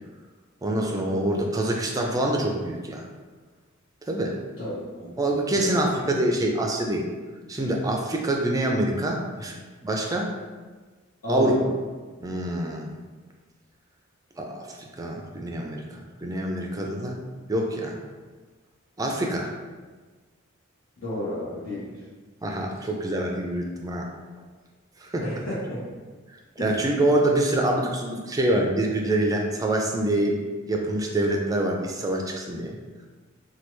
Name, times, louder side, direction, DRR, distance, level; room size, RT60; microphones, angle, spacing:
voice 1, 0.6-3.0 4.1-4.4 5.2-7.1 7.5-9.6 9.8-10.3 11.3-11.5 12.2-12.9 14.4-17.2 17.5-18.0 19.0-19.5 22.4-24.1 25.0-25.2 26.6-30.4 30.7-32.7, right 1 dB, 15° right, 0 dB, 0.3 m, -25 dB
voice 2, 4.6-5.2 5.5-5.7 11.2-11.5 21.0-22.0 25.2-25.8 26.6-26.7, left 1 dB, 75° left, -12 dB, 1.0 m, -32 dB
3.2 x 2.3 x 3.0 m, 1.4 s
head